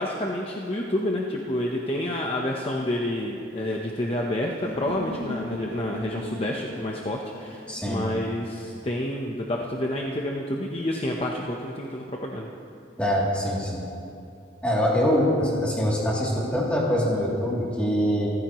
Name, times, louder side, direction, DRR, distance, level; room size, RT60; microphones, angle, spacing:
voice 1, 0.0-12.5, left 1 dB, 30° left, -1 dB, 0.9 m, -29 dB
sound 1, 4.6-8.6, left 1 dB, 55° right, 3.7 m, -37 dB
voice 2, 7.7-8.1 13.0-13.9 14.6-18.3, equal, 5° left, -5 dB, 3.0 m, -24 dB
27.0 x 14.5 x 3.1 m, 2.6 s
head